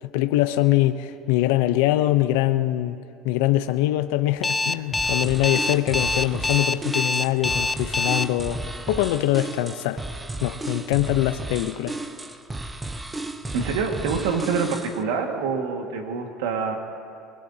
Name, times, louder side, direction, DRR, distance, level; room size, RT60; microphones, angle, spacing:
voice 1, 0.0-3.0 3.2-10.0 10.4-12.0, left 14 dB, 80° left, 10 dB, 0.6 m, -23 dB
Alarm, 4.4-8.2, left 2 dB, 15° left, 0.4 m, -24 dB
sound 1, 4.9-15.0, right 2 dB, 15° right, 0.9 m, -34 dB
voice 2, 13.5-16.8, right 5 dB, 80° right, 3 dB, 1.8 m, -26 dB
25.5 x 20.5 x 2.8 m, 2.6 s
supercardioid pair, 105°, 0 cm